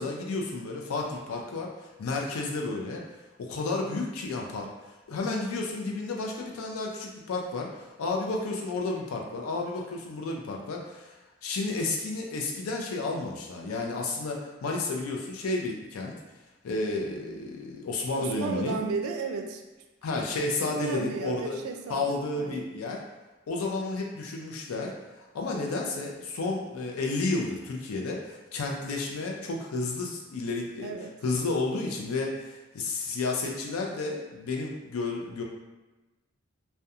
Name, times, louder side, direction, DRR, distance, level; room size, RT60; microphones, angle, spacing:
voice 1, 0.0-3.0 3.4-4.7 5.1-11.1 11.4-16.1 16.6-18.8 20.0-21.6 21.9-23.0 23.5-30.9 31.2-35.4, left 3 dB, 90° left, 0 dB, 0.4 m, -31 dB
voice 2, 18.2-19.6 20.6-22.7 30.8-31.2, right 4 dB, 90° right, 4 dB, 0.3 m, -34 dB
2.3 x 2.2 x 2.7 m, 1.1 s
head